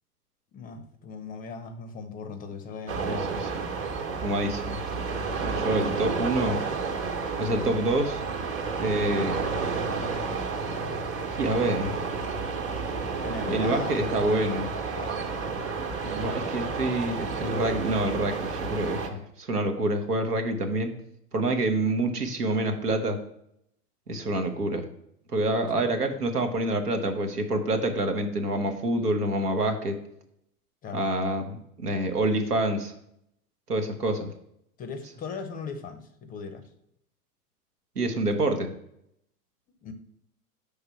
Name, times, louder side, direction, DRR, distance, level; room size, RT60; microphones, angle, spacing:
voice 1, 0.5-3.3 7.4-7.8 9.1-9.3 13.2-14.7 14.9-15.3 25.7-25.9 30.8-31.1 34.8-36.6 39.8-39.9, left 5 dB, 20° left, 8 dB, 0.6 m, -38 dB
sound 1, 2.9-19.1, right 4 dB, 25° right, 1.2 m, -31 dB
voice 2, 3.1-3.5 4.2-4.8 5.4-6.6 7.4-8.2 8.8-9.4 11.4-12.0 13.5-14.7 16.0-20.9 21.3-23.2 24.1-24.8 25.3-30.0 30.9-32.9 33.7-34.3 38.0-38.7, right 1 dB, 85° right, 6 dB, 1.1 m, -27 dB
5.7 x 3.5 x 5.6 m, 0.75 s
figure-of-eight pair, 95°, 45 cm